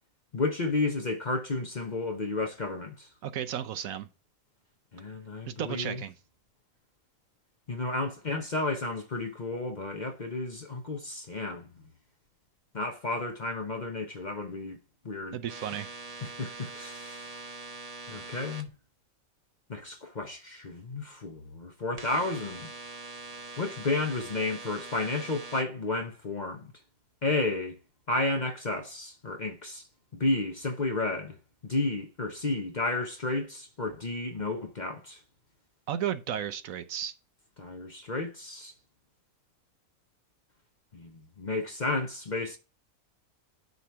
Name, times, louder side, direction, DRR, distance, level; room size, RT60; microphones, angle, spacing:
voice 1, 0.3-3.1 4.9-6.0 7.7-11.7 12.7-14.8 15.0-15.4 16.2-17.3 18.1-18.7 19.7-22.7 23.6-26.7 27.2-27.8 28.1-29.9 30.1-31.4 31.6-35.2 37.6-38.7 40.9-42.6, left 2 dB, 35° left, 0.8 m, -32 dB
voice 2, 3.2-4.1 5.5-6.1 15.3-15.9 35.9-37.1, right 10 dB, 70° right, 1.0 m, -33 dB
sound 1, 15.5-18.6 22.0-25.6, right 3 dB, 30° right, 1.0 m, -43 dB
9.4 x 3.2 x 5.7 m
omnidirectional pair, 1.6 m